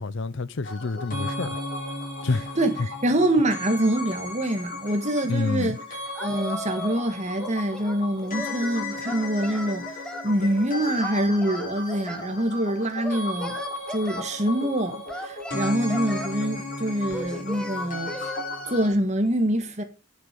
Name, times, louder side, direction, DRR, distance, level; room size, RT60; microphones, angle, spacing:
voice 1, 0.0-1.6 2.2-2.5 5.3-5.8, left 3 dB, 60° left, 0.6 m, -28 dB
sound 1, 0.6-18.9, left 2 dB, 40° left, 6.5 m, -35 dB
voice 2, 2.6-5.8 6.2-9.9 10.2-13.5 13.9-18.3 18.7-19.8, right 1 dB, 30° right, 1.7 m, -25 dB
Singing, 6.1-7.1 7.4-8.6 9.0-10.3 11.0-12.3 13.0-14.3 15.1-16.4 17.1-18.4, equal, 5° left, 1.0 m, -37 dB
10.5 x 7.7 x 5.3 m
head